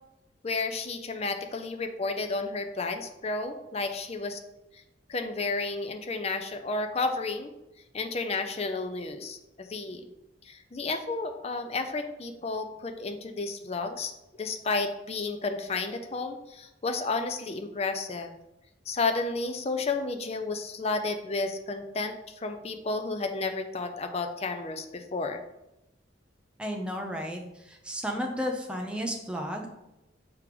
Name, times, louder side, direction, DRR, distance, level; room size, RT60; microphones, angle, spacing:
voice 1, 0.4-4.4 4.7-4.8 5.1-7.5 7.9-10.0 10.4-14.1 14.4-18.3 18.9-25.4, left 3 dB, 35° left, 6 dB, 0.5 m, -32 dB
voice 2, 26.6-29.7, equal, 5° right, 1 dB, 0.7 m, -33 dB
6.2 x 3.6 x 4.9 m, 0.93 s
head